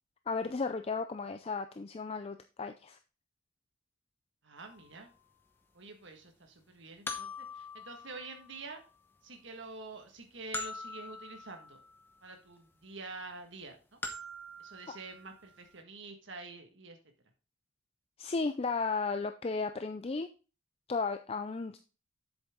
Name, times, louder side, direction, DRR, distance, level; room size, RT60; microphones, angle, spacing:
voice 1, 0.3-3.0 14.9-15.0 18.2-20.3 20.9-21.8, left 4 dB, 30° left, 9 dB, 0.4 m, -34 dB
voice 2, 4.4-5.1 5.7-8.8 9.2-11.8 12.2-14.0 14.6-17.0, right 3 dB, 65° right, 4 dB, 1.7 m, -47 dB
sound 1, 4.6-4.7 7.1-8.9 10.5-12.2 14.0-15.5, left 2 dB, 10° left, 0.9 m, -43 dB
8.0 x 7.0 x 3.7 m, 0.33 s
head